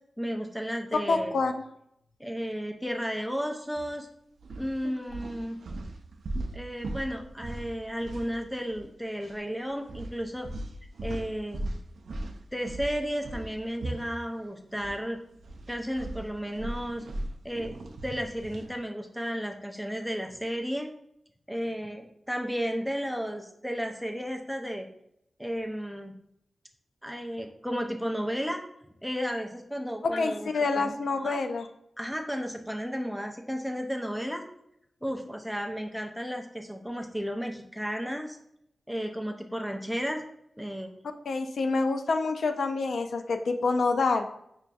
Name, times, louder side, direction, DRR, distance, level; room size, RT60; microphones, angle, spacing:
voice 1, 0.2-1.3 2.2-4.1 4.6-5.6 6.5-10.5 11.0-11.6 12.5-15.2 15.7-17.0 17.4-17.8 18.0-20.9 21.5-24.9 25.4-26.1 27.0-28.6 29.0-31.4 32.0-34.4 35.0-38.4 38.9-40.2 40.6-40.9, equal, ahead, 3 dB, 0.4 m, -33 dB
voice 2, 1.1-1.5 30.0-31.7 41.3-44.3, left 3 dB, 80° left, 7 dB, 0.3 m, -27 dB
sound 1, 3.8-4.0 4.4-8.9 9.1-9.4 9.9-15.0 15.3-18.8, right 1 dB, 85° right, 0.3 m, -39 dB
5.7 x 2.5 x 2.3 m, 0.75 s
wide cardioid pair, 130°, 0 cm